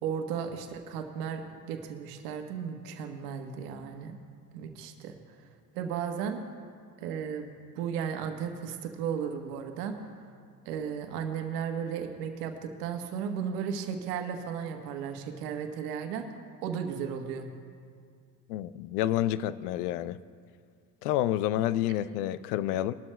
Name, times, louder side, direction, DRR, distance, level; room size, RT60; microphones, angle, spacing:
voice 1, 0.0-4.2 4.5-5.1 5.7-6.4 7.0-7.5 7.8-9.9 10.6-16.3 16.6-17.5, right 7 dB, 80° right, 5 dB, 1.3 m, -35 dB
voice 2, 18.5-20.2 21.0-22.9, left 13 dB, 80° left, 16 dB, 0.6 m, -29 dB
21.0 x 12.5 x 2.2 m, 2.1 s
hypercardioid pair, 70°, 46 cm